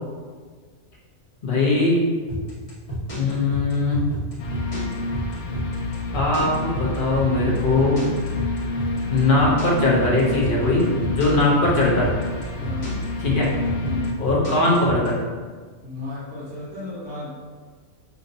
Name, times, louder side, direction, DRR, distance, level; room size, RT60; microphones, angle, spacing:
voice 1, 1.4-2.0 3.2-4.0 6.1-8.0 9.1-12.1 13.2-13.5 14.2-15.2, left 2 dB, 45° left, -4 dB, 0.8 m, -20 dB
sound 1, 2.3-15.1, right 1 dB, 25° left, 1.1 m, -30 dB
sound 2, 4.4-14.1, left 3 dB, 70° left, 0.9 m, -29 dB
voice 2, 12.5-13.0 13.8-14.2 15.8-17.3, left 2 dB, 60° right, -11 dB, 1.5 m, -34 dB
5.6 x 2.6 x 2.6 m, 1.5 s
omnidirectional pair, 1.5 m